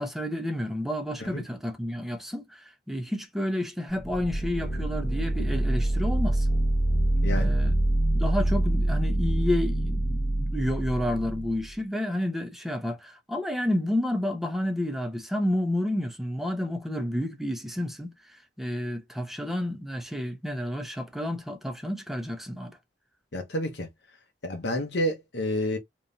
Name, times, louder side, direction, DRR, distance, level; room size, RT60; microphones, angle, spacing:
voice 1, 0.0-6.5 7.3-7.7 8.1-22.7, left 1 dB, ahead, 0.7 m, -30 dB
sound 1, 3.9-11.7, right 1 dB, 45° left, 0.8 m, -26 dB
voice 2, 7.2-7.5 23.3-23.9 24.4-25.8, left 1 dB, 80° left, 0.9 m, -29 dB
3.4 x 3.1 x 2.7 m
head